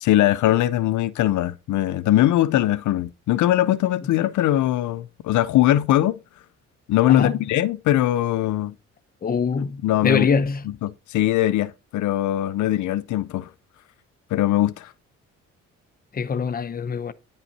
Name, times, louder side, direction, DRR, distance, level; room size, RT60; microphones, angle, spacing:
voice 1, 0.0-6.2 6.9-8.7 9.8-10.3 10.7-13.5 14.3-14.9, left 14 dB, 75° left, 0.6 m, -21 dB
voice 2, 9.2-10.7 16.1-17.1, left 5 dB, 30° left, 0.7 m, -23 dB
9.9 x 5.6 x 4.1 m
cardioid pair, 90°, 30 cm